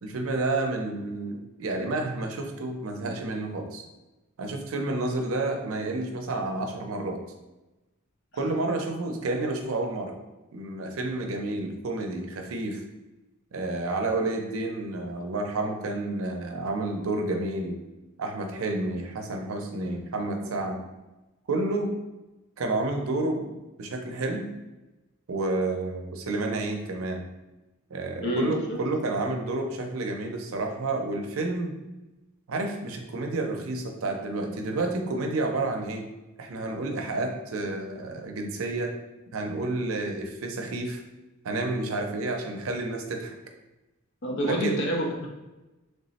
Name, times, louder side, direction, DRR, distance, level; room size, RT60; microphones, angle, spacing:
voice 1, 0.0-3.8 4.4-7.2 8.3-10.2 10.5-12.8 13.5-17.8 18.2-20.8 21.5-21.9 22.6-23.5 23.8-24.5 25.3-27.2 27.9-31.7 32.5-36.0 36.4-38.9 39.3-41.0 41.4-43.4 44.4-44.8, right 2 dB, 85° right, 3 dB, 0.5 m, -30 dB
voice 2, 28.2-28.8 44.2-45.3, equal, 60° left, -1 dB, 0.7 m, -27 dB
3.3 x 2.0 x 4.0 m, 1.0 s
head